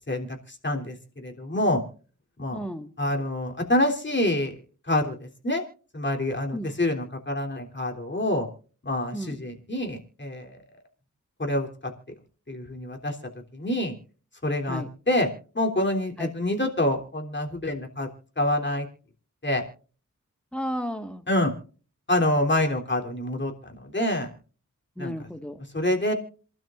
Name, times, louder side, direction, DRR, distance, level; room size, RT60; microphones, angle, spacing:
voice 1, 0.1-1.8 2.4-2.6 3.0-4.5 4.9-5.2 5.4-5.6 5.9-8.5 8.8-10.5 11.4-11.9 12.5-13.2 13.5-13.9 14.4-15.3 15.6-18.1 18.4-18.9 19.4-19.6 21.3-21.5 22.1-24.3 25.0-25.1 25.7-26.1, left 1 dB, 35° left, 1 dB, 3.4 m, -26 dB
voice 2, 2.5-2.9 6.5-6.7 9.1-9.4 14.6-14.9 16.2-16.3 20.5-21.2 25.0-25.6, equal, 5° left, 7 dB, 1.8 m, -33 dB
27.5 x 12.0 x 2.5 m, 0.39 s
wide cardioid pair, 65°, 31 cm